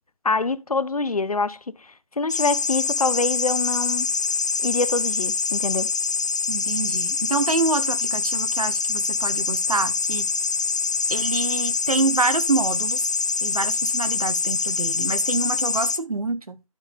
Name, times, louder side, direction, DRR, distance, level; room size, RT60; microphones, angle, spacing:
voice 1, 0.2-1.6 2.2-4.1 4.6-5.9, left 3 dB, 85° left, 1.0 m, -25 dB
sound 1, 2.3-16.0, left 5 dB, 30° left, 0.5 m, -25 dB
voice 2, 6.5-10.3 11.1-13.1 13.4-16.6, right 3 dB, 80° right, 1.3 m, -26 dB
12.0 x 5.3 x 3.5 m
figure-of-eight pair, 160°, 18 cm